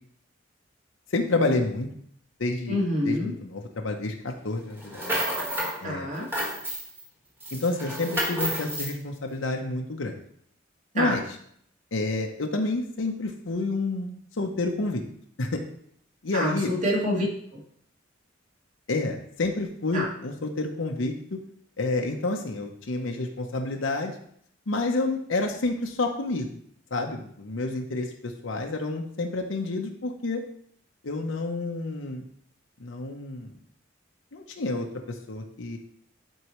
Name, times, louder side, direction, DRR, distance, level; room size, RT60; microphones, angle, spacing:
voice 1, 1.1-1.9 2.4-2.8 3.0-5.1 5.8-6.1 7.5-10.2 10.9-11.2 11.9-15.0 15.4-15.6 16.2-16.7 18.9-21.4 21.8-24.1 24.7-26.5 26.9-30.4 31.0-32.2 32.8-33.5 34.3-35.8, left 2 dB, 85° left, 2 dB, 0.9 m, -29 dB
voice 2, 2.7-3.3 5.8-6.3 10.9-11.1 16.3-17.2 17.5-17.6 19.9-20.1, equal, 40° right, -4 dB, 2.4 m, -26 dB
sound 1, 4.8-5.8 6.1-7.0 7.4-8.9, right 1 dB, 10° right, 1.6 m, -30 dB
11.0 x 4.6 x 3.1 m, 0.66 s
head